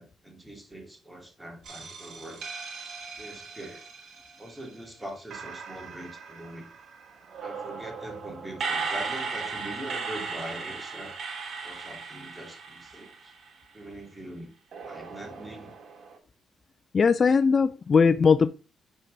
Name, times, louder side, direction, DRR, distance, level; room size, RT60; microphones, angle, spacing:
voice 1, 0.0-2.4 3.2-3.9 4.4-6.7 7.4-11.2 11.6-13.4 13.7-14.5 14.8-15.7, right 1 dB, 10° right, 2.7 m, -42 dB
sound 1, 1.6-4.8 5.3-13.7 14.7-16.2, right 5 dB, 65° right, 2.8 m, -37 dB
voice 2, 16.9-18.5, left 5 dB, 40° left, 0.4 m, -20 dB
10.0 x 4.6 x 3.9 m
cardioid pair, 90°, 0 cm